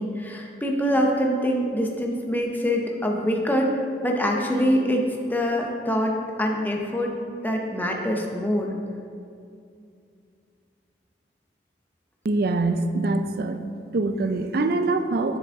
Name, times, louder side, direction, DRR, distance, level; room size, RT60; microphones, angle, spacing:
voice 1, 0.0-3.8 4.0-7.1 7.4-8.7, equal, 10° left, 1 dB, 0.6 m, -24 dB
voice 2, 12.2-13.6 13.9-15.4, right 2 dB, 55° right, 9 dB, 0.4 m, -24 dB
7.4 x 7.0 x 3.5 m, 2.4 s
head